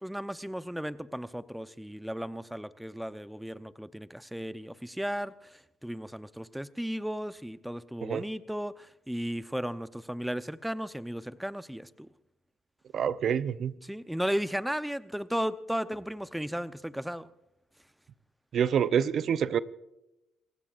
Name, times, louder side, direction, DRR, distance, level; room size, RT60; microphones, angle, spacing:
voice 1, 0.0-12.1 13.8-17.3, equal, 5° right, 13 dB, 0.8 m, -35 dB
voice 2, 12.9-13.7 18.5-19.6, right 8 dB, 55° right, 15 dB, 0.7 m, -27 dB
29.0 x 16.0 x 2.5 m, 0.89 s
cardioid pair, 90°, 0 cm